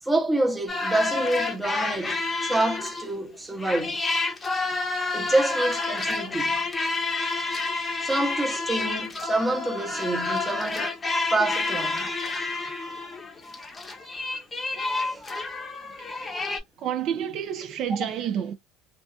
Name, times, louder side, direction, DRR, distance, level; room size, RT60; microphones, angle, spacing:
voice 1, 0.0-4.0 5.1-6.7 8.0-11.0 11.3-12.1 14.8-15.2, right 2 dB, 10° right, 0.8 m, -27 dB
sound 1, 0.7-3.2 3.6-16.6, left 3 dB, 20° left, 0.8 m, -29 dB
voice 2, 16.0-16.5 16.8-18.5, right 9 dB, 50° right, 0.4 m, -30 dB
2.6 x 2.3 x 2.3 m
supercardioid pair, 115°, 0 cm